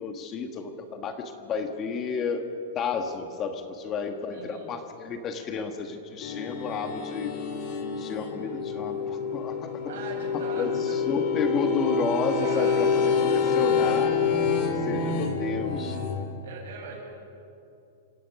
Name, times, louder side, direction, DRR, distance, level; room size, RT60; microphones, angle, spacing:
voice 1, 0.0-7.3 7.9-9.8 10.3-14.1 14.7-16.0, left 5 dB, 25° left, 6 dB, 1.4 m, -31 dB
voice 2, 4.3-4.7 9.9-11.0 12.4-13.0 16.4-17.0, right 6 dB, 70° right, 0 dB, 7.1 m, -41 dB
sound 1, 6.2-16.2, left 5 dB, 40° left, 2.5 m, -27 dB
28.0 x 16.5 x 6.0 m, 2.7 s
supercardioid pair, 155°, 0 cm